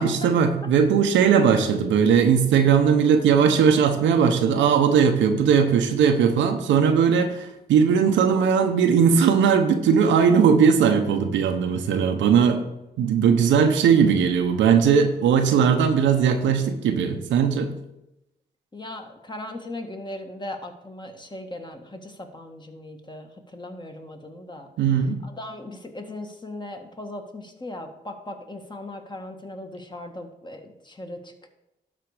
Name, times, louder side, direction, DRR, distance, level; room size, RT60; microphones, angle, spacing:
voice 1, 0.0-12.6 13.0-17.7 24.8-25.2, right 7 dB, 90° right, 6 dB, 0.9 m, -19 dB
voice 2, 18.7-24.7 25.2-31.5, left 1 dB, 25° left, 4 dB, 1.6 m, -38 dB
12.0 x 4.2 x 4.9 m, 0.89 s
cardioid pair, 60°, 19 cm